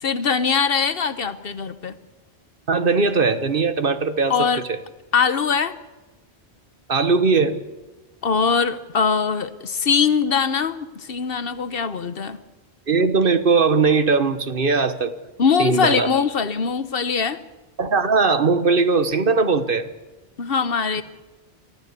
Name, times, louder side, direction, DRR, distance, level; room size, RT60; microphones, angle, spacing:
voice 1, 0.0-2.0 4.3-4.6 5.1-5.7 8.2-12.4 15.4-17.4 20.4-21.0, left 6 dB, 60° left, 13 dB, 1.2 m, -22 dB
voice 2, 2.7-4.5 6.9-7.6 12.9-15.1 15.6-16.1 17.8-19.9, right 4 dB, 55° right, 11 dB, 1.4 m, -19 dB
24.0 x 14.0 x 8.3 m, 1.2 s
omnidirectional pair, 1.1 m